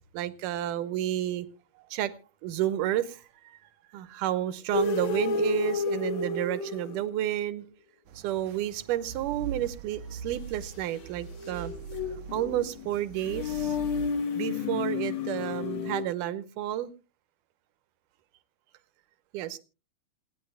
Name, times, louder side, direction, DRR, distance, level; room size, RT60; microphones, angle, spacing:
voice 1, 0.1-1.5 1.8-2.1 2.4-7.6 8.2-11.7 12.3-13.8 14.4-16.9 19.3-19.6, right 12 dB, 90° right, 13 dB, 2.4 m, -31 dB
sound 1, 4.7-7.4 10.8-16.0, left 5 dB, 55° left, 1.6 m, -31 dB
sound 2, 8.1-14.1, right 6 dB, 75° right, 2.2 m, -42 dB
26.5 x 9.8 x 2.2 m, 0.31 s
omnidirectional pair, 3.7 m